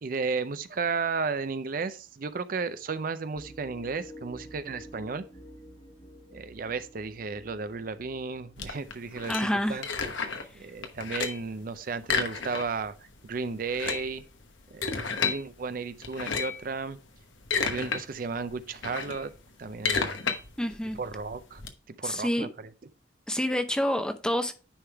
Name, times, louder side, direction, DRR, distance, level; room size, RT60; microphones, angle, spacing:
voice 1, 0.0-5.2 6.3-9.9 10.3-13.0 13.2-14.2 14.7-17.0 17.6-19.3 19.6-20.2 21.0-21.6 22.0-22.7, right 4 dB, 45° right, 0.5 m, -34 dB
sound 1, 3.3-8.7, equal, 30° left, 1.0 m, -49 dB
sound 2, 8.6-10.5 10.8-11.5 12.0-12.9 13.2-13.3 13.6-15.4 16.0-16.7 17.2-18.0 18.4-21.7, left 5 dB, 85° left, 1.2 m, -31 dB
voice 2, 9.3-9.8 20.6-21.0 22.0-22.5 23.3-24.5, equal, 5° left, 0.6 m, -28 dB
10.0 x 3.6 x 4.5 m
head